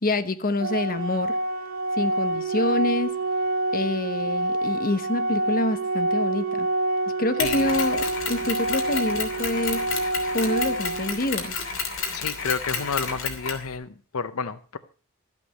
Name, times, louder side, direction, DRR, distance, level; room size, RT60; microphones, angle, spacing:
voice 1, 0.0-1.4 2.0-3.1 3.7-6.7 7.2-9.9 10.3-11.6, left 2 dB, 40° left, 1.0 m, -27 dB
Organ, 0.6-11.6, right 2 dB, 75° right, 1.3 m, -27 dB
Mechanisms, 7.4-13.7, left 5 dB, 65° left, 3.0 m, -31 dB
voice 2, 12.1-14.8, left 5 dB, 80° left, 0.6 m, -30 dB
13.0 x 8.5 x 6.4 m
head